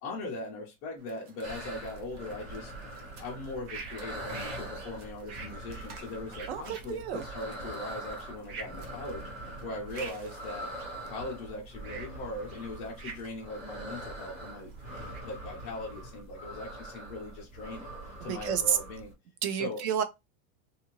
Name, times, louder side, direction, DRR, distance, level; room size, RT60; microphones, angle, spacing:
voice 1, 0.0-2.7 3.2-10.7 11.0-14.7 15.2-17.9 18.2-19.1 19.5-19.8, left 2 dB, 20° left, 0.3 m, -40 dB
sound 1, 1.0-15.2, right 4 dB, 90° right, 1.0 m, -49 dB
sound 2, 1.4-19.1, right 1 dB, 20° right, 0.9 m, -43 dB
voice 2, 6.5-7.3 18.2-18.8 19.4-20.0, right 8 dB, 50° right, 0.6 m, -30 dB
2.8 x 2.4 x 3.0 m
supercardioid pair, 165°, 42 cm